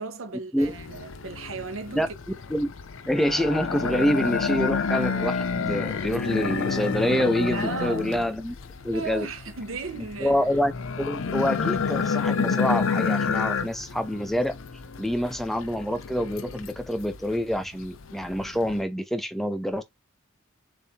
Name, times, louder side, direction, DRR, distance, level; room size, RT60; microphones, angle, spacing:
voice 1, 0.0-2.2 7.5-8.1 8.9-10.4, right 4 dB, 80° right, 0.9 m, -35 dB
sound 1, 0.6-18.8, left 5 dB, 75° left, 0.5 m, -29 dB
voice 2, 3.1-8.5 8.8-9.3 10.2-10.7 11.0-14.6 15.0-19.8, equal, ahead, 0.4 m, -26 dB
6.8 x 2.6 x 2.8 m
head